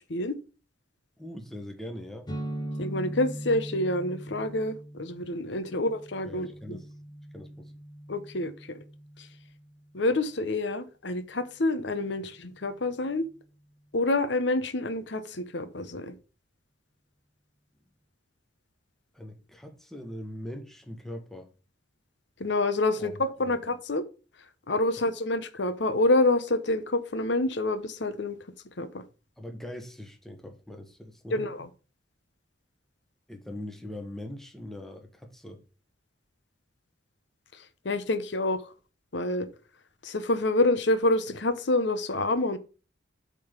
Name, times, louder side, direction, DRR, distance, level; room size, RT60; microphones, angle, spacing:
voice 1, 1.2-2.3 5.7-5.8 6.2-6.9 7.3-7.7 19.1-21.5 23.0-23.1 23.5-23.6 29.4-31.4 33.3-35.6, left 1 dB, ahead, 1.2 m, -41 dB
sound 1, 2.3-9.9, right 1 dB, 25° left, 1.2 m, -40 dB
voice 2, 2.8-6.8 8.1-8.8 9.9-13.3 13.9-16.1 22.4-24.0 24.7-28.4 28.8-29.0 31.3-31.7 37.8-38.6 39.1-39.5 40.0-42.6, left 2 dB, 65° left, 0.9 m, -27 dB
8.4 x 3.9 x 6.6 m
head